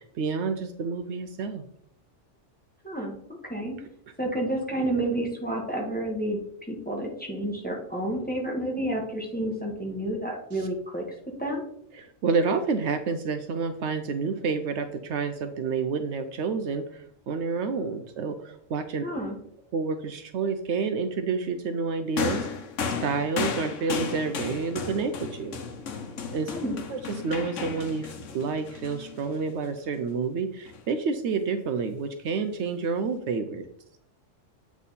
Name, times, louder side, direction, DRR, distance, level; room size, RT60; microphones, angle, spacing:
voice 1, 0.0-1.6 10.5-10.7 11.9-19.0 19.7-22.5 23.0-25.6 26.3-26.5 26.9-33.6, right 4 dB, 70° right, 9 dB, 0.8 m, -29 dB
voice 2, 2.8-3.2 3.4-3.8 4.2-6.4 6.7-11.0 11.4-11.7 19.0-19.4 26.5-26.8, right 1 dB, 10° left, -1 dB, 1.3 m, -30 dB
sound 1, 22.2-29.7 30.7-30.8, left 5 dB, 75° left, 1.2 m, -34 dB
8.3 x 3.6 x 4.1 m, 0.68 s
omnidirectional pair, 1.3 m